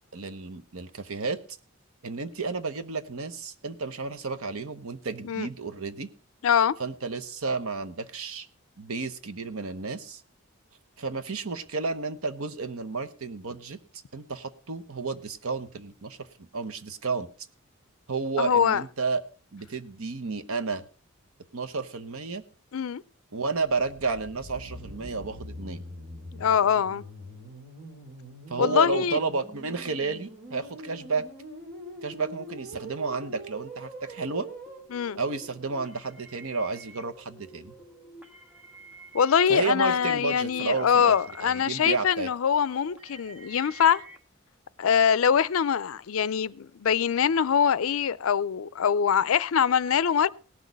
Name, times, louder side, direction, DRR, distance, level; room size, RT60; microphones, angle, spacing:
voice 1, 0.1-1.4 2.0-6.1 6.8-8.5 8.8-10.2 11.0-13.8 14.1-17.3 18.1-19.2 19.5-20.8 21.5-22.4 23.3-25.8 28.5-31.3 32.0-34.5 35.2-37.7 39.5-41.1 41.4-42.3, right 4 dB, 80° right, 1.0 m, -31 dB
voice 2, 6.4-6.8 18.4-18.8 22.7-23.0 26.3-27.0 28.6-29.2 34.9-35.2 39.1-44.0 44.8-50.3, left 7 dB, 70° left, 0.4 m, -23 dB
sound 1, 23.8-34.8, right 1 dB, 45° right, 3.5 m, -43 dB
sound 2, 34.7-44.2, right 3 dB, 5° right, 1.4 m, -49 dB
18.0 x 6.2 x 5.2 m
head